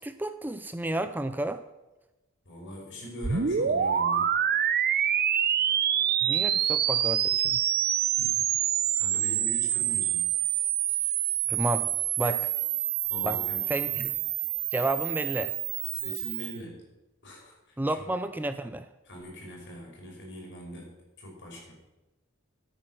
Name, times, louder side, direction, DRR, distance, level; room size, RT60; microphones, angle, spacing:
voice 1, 0.0-1.6 6.2-7.6 11.5-11.9 12.2-12.5 13.2-13.4 13.7-14.1 14.7-15.5 17.8-18.9, right 1 dB, 10° right, 10 dB, 0.5 m, -31 dB
voice 2, 2.5-4.3 8.2-8.5 9.0-10.3 10.9-11.1 13.1-14.1 15.9-16.9 17.2-18.2 19.0-21.8, equal, 60° left, -1 dB, 5.4 m, -42 dB
sound 1, 3.2-16.5, right 10 dB, 50° right, 0.7 m, -27 dB
13.0 x 8.9 x 6.1 m, 1.0 s
head